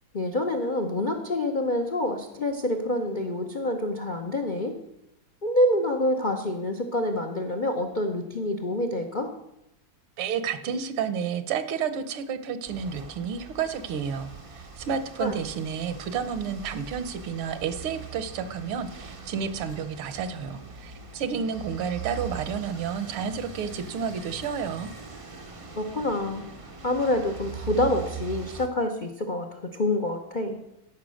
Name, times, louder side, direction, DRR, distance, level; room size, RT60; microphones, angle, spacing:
voice 1, 0.1-4.8 5.4-9.3 15.2-15.3 25.8-26.4 26.8-30.6, left 1 dB, 75° left, 5 dB, 0.4 m, -27 dB
voice 2, 10.2-14.3 14.6-24.9, right 7 dB, 75° right, 12 dB, 1.7 m, -31 dB
sound 1, 12.6-28.7, right 5 dB, 60° right, 0.3 m, -42 dB
14.0 x 5.6 x 6.3 m, 0.85 s
omnidirectional pair, 2.4 m